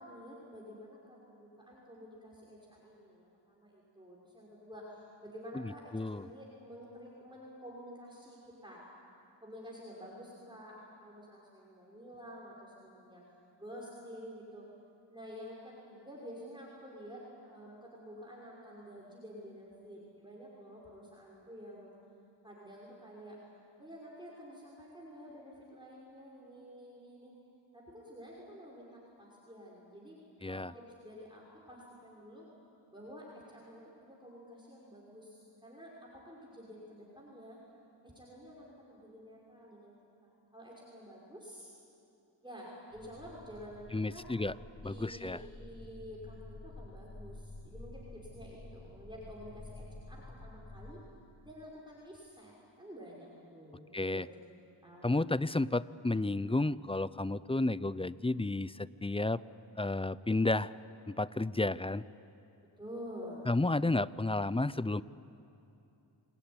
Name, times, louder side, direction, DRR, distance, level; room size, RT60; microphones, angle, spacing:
voice 1, 0.0-8.8 9.4-13.2 13.6-14.6 15.1-21.9 22.4-23.4 23.8-27.3 27.7-30.2 30.4-32.5 32.9-37.6 38.0-40.0 40.2-41.7 42.4-44.2 44.7-51.0 51.4-54.4 54.8-55.1 62.8-63.5, equal, 10° right, -5 dB, 5.9 m, -50 dB
voice 2, 5.5-6.3 30.4-30.7 43.9-44.5 44.8-45.4 53.9-54.3 55.0-59.4 59.8-60.7 61.1-62.0 63.5-65.0, left 2 dB, 10° left, 18 dB, 0.6 m, -32 dB
sound 1, 42.9-50.9, left 2 dB, 90° left, 2.7 m, -50 dB
28.5 x 18.0 x 9.9 m, 2.7 s
cardioid pair, 45°, 46 cm